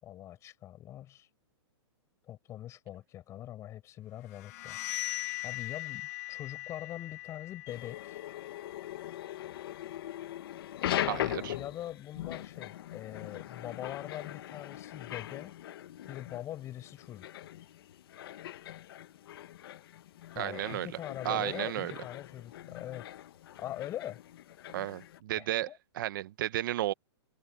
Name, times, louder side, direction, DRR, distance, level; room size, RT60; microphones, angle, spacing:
voice 1, 0.0-1.3 2.3-4.8 5.4-8.2 11.0-15.5 16.1-17.3 20.3-23.1 23.6-24.2 25.4-25.8, left 12 dB, 20° left, 5.8 m, -43 dB
sound 1, 4.3-10.0, left 19 dB, 35° left, 1.2 m, -41 dB
sound 2, 7.7-25.2, left 13 dB, 55° left, 1.7 m, -41 dB
voice 2, 11.1-11.6 20.4-20.9 21.2-21.9 24.7-25.7 25.9-26.9, right 14 dB, 45° right, 0.9 m, -33 dB
hypercardioid pair, 165°, 15 cm